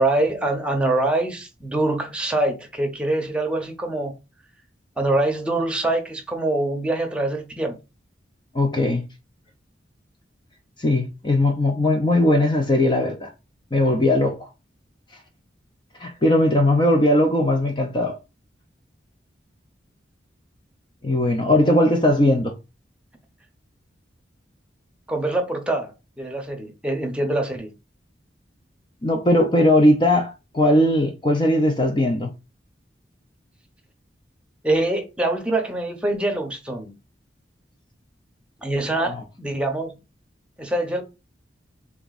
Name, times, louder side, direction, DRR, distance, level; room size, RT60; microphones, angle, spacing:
voice 1, 0.0-4.2 5.0-7.8 25.1-27.7 34.6-36.9 38.6-39.9 40.6-41.0, right 2 dB, 5° right, 0.8 m, -24 dB
voice 2, 8.5-9.0 10.8-13.3 13.7-14.4 16.0-18.1 21.0-22.5 29.0-32.3 38.9-39.1, left 1 dB, 25° left, 0.5 m, -19 dB
3.5 x 3.5 x 4.0 m
head